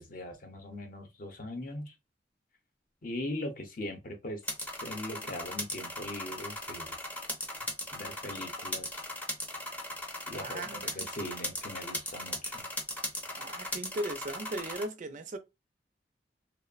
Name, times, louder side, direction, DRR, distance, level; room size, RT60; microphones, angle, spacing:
voice 1, 0.0-1.9 3.0-4.4 4.8-7.0 7.9-9.0 10.3-12.7, left 1 dB, 50° left, 0.6 m, -40 dB
sound 1, 4.4-14.8, left 1 dB, 10° left, 0.5 m, -38 dB
voice 2, 10.3-11.0 13.3-15.4, right 1 dB, 45° right, 0.4 m, -38 dB
2.8 x 2.0 x 2.3 m
head